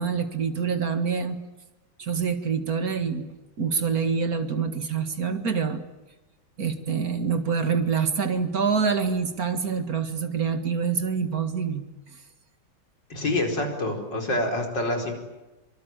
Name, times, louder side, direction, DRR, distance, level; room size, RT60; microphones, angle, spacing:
voice 1, 0.0-1.4 2.0-3.3 3.6-5.8 6.6-11.8, right 6 dB, 55° right, 9 dB, 2.3 m, -26 dB
voice 2, 13.1-15.1, left 1 dB, 75° left, 3 dB, 5.5 m, -26 dB
25.0 x 25.0 x 9.2 m, 1.0 s
omnidirectional pair, 1.9 m